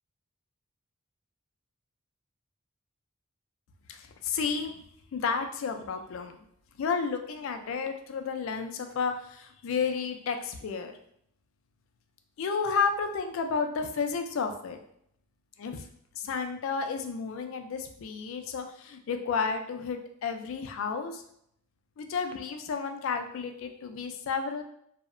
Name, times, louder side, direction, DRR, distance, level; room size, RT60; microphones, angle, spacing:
voice 1, 3.9-4.8 5.1-6.4 6.8-10.9 12.4-14.8 15.6-15.8 16.2-21.2 22.0-24.6, left 5 dB, 70° left, 6 dB, 0.3 m, -32 dB
2.7 x 2.0 x 2.5 m, 0.70 s
head